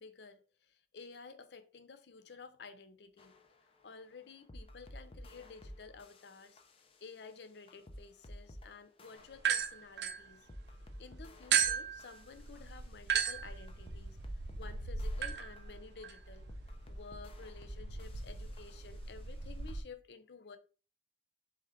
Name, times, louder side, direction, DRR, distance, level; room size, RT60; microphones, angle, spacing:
voice 1, 0.0-3.3 3.8-6.6 7.0-10.5 11.0-14.2 14.5-16.5 16.9-20.6, left 4 dB, 70° left, 0.6 m, -52 dB
sound 1, 3.2-19.8, equal, 30° left, 0.6 m, -54 dB
sound 2, 9.4-10.8 11.5-19.8, right 7 dB, 75° right, 0.5 m, -37 dB
4.3 x 3.5 x 3.5 m
head